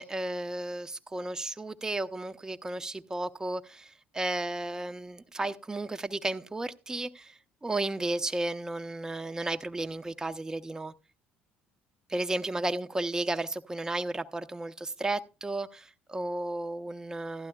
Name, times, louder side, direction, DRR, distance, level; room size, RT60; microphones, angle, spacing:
voice 1, 0.0-10.9 12.1-17.5, right 2 dB, 15° right, 0.6 m, -33 dB
15.0 x 11.5 x 2.3 m
hypercardioid pair, 65°, 4 cm